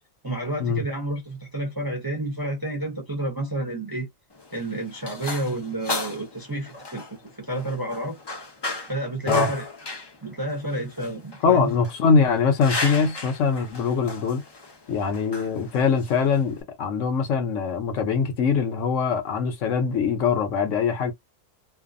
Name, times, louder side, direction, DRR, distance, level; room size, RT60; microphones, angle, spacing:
voice 1, 0.2-4.1 4.5-7.1 7.4-8.2 8.9-9.7 10.2-11.7, right 1 dB, 20° right, 0.7 m, -30 dB
sound 1, 4.3-16.6, left 3 dB, 30° left, 0.4 m, -35 dB
voice 2, 11.4-14.4 14.9-21.1, left 5 dB, 70° left, 1.0 m, -22 dB
2.6 x 2.3 x 2.4 m
omnidirectional pair, 1.4 m